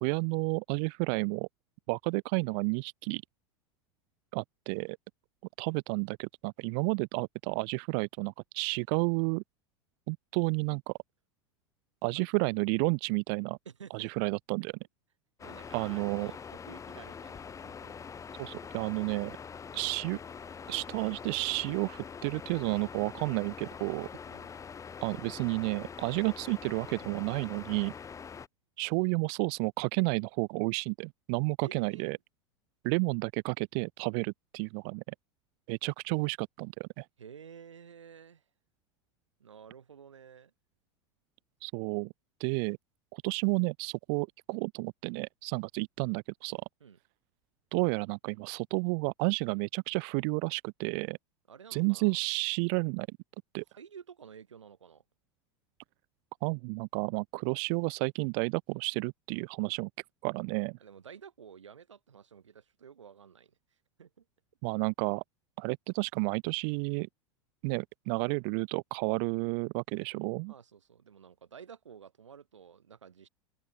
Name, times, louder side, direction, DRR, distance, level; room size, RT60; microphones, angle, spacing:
voice 1, 0.0-1.5 1.9-3.2 4.3-5.0 5.6-9.4 10.1-10.9 12.0-13.6 13.9-14.7 15.7-16.3 18.4-19.3 19.7-20.2 20.7-24.1 25.0-27.9 28.8-32.2 32.8-35.0 35.7-37.1 41.6-42.1 42.4-42.8 43.1-46.6 47.7-51.2 51.7-53.1 53.5-53.6 56.4-59.9 60.2-60.8 64.6-65.2 65.6-67.1 67.6-70.5, right 40 dB or more, 55° right, 0.5 m, -31 dB
voice 2, 13.6-14.1 15.4-18.0 24.3-24.5 31.6-32.2 37.2-38.4 39.4-40.5 46.8-47.0 51.5-52.1 53.8-55.0 60.8-63.5 64.0-64.2 70.5-73.3, right 7 dB, 85° right, 4.5 m, -51 dB
sound 1, 15.4-28.5, left 6 dB, 20° left, 1.1 m, -44 dB
open air
hypercardioid pair, 90°, 15 cm